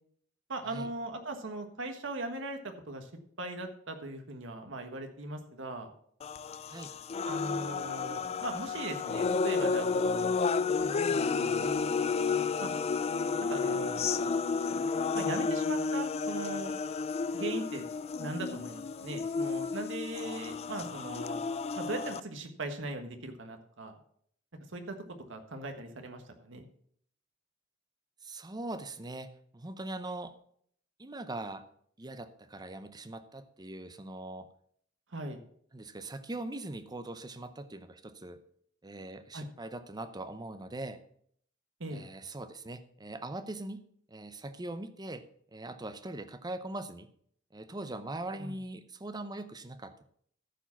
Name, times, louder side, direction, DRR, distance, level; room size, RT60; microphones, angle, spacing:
voice 1, 0.5-3.1 3.4-5.9 7.2-10.4 10.7-11.9 12.6-12.7 13.5-14.0 15.1-16.8 17.3-17.8 18.2-21.4 21.7-24.0 24.7-24.9 25.3-26.7 35.1-35.4 39.3-39.5 41.8-42.0 48.4-48.5, right 2 dB, 70° right, 5 dB, 1.4 m, -39 dB
sound 1, 6.2-22.2, left 4 dB, 30° left, 0.3 m, -31 dB
voice 2, 28.2-30.3 31.0-31.7 32.0-34.5 35.7-38.4 38.8-41.0 41.9-43.8 44.1-45.2 45.5-47.1 47.5-50.0, right 2 dB, 20° right, 10 dB, 0.7 m, -41 dB
14.5 x 4.9 x 5.8 m, 0.63 s
head